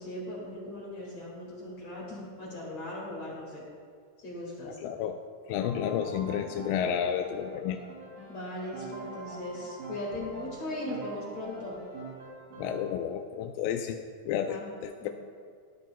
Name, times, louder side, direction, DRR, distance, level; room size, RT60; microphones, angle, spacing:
voice 1, 0.0-3.6 4.2-4.7 8.3-11.8 14.5-14.6 15.0-15.1, left 1 dB, 50° left, -4 dB, 2.9 m, -38 dB
voice 2, 4.6-5.2 5.5-7.8 12.6-15.1, left 9 dB, 85° left, 5 dB, 2.0 m, -31 dB
Piano, 5.6-12.9, right 3 dB, 55° right, 4.2 m, -45 dB
18.0 x 10.5 x 2.3 m, 2.1 s
omnidirectional pair, 4.5 m